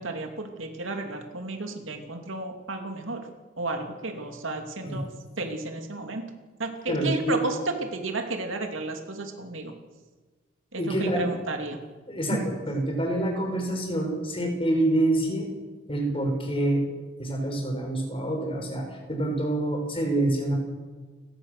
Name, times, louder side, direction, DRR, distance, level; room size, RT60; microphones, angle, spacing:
voice 1, 0.0-3.3 3.6-5.1 5.4-6.3 6.6-9.7 10.7-11.8 12.3-12.4, right 2 dB, 70° right, 4 dB, 2.6 m, -32 dB
voice 2, 6.9-7.3 10.8-11.3 12.1-15.5 15.9-16.8 17.2-20.6, right 1 dB, 25° left, 2 dB, 5.5 m, -27 dB
29.5 x 16.0 x 6.7 m, 1.4 s
head